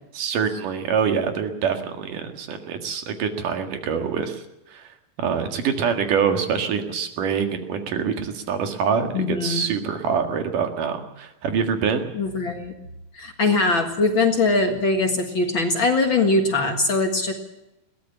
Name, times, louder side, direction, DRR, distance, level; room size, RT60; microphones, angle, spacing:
voice 1, 0.1-4.9 5.2-12.1, right 6 dB, 75° right, 6 dB, 3.5 m, -25 dB
voice 2, 9.1-9.6 12.1-12.7 13.1-17.3, left 3 dB, 45° left, 4 dB, 2.1 m, -21 dB
21.5 x 17.0 x 7.1 m, 0.91 s
omnidirectional pair, 3.8 m